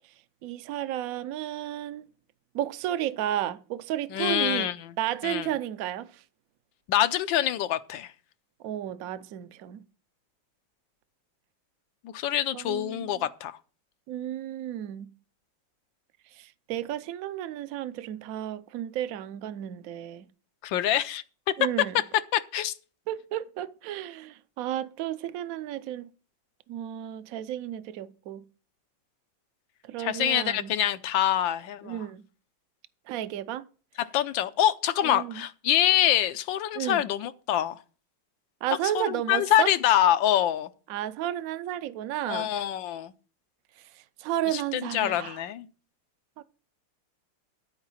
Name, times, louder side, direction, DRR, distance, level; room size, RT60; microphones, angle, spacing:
voice 1, 0.4-2.1 2.5-4.7 5.0-6.2 8.6-9.8 12.5-13.2 14.1-15.1 16.4-20.2 21.6-22.0 23.1-26.1 26.7-28.4 29.9-30.7 31.8-32.2 33.1-33.6 35.0-35.4 36.7-37.0 38.6-39.7 40.9-42.5 44.2-45.4 46.4-46.5, right 12 dB, 65° right, 0.9 m, -32 dB
voice 2, 4.1-4.9 5.2-5.5 6.9-8.1 12.0-13.6 20.6-21.2 22.3-22.7 30.0-32.0 34.0-37.8 38.9-40.7 42.3-43.1 44.5-45.7, left 11 dB, 85° left, 1.4 m, -25 dB
12.0 x 4.8 x 7.2 m
omnidirectional pair, 2.1 m